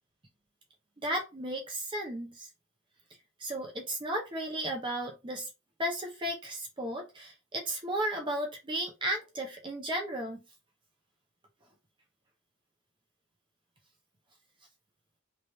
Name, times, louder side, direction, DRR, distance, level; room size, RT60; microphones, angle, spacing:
voice 1, 1.0-2.5 3.4-5.5 5.8-10.4, right 1 dB, 25° right, 1 dB, 0.7 m, -34 dB
3.2 x 3.0 x 4.0 m, 0.27 s
head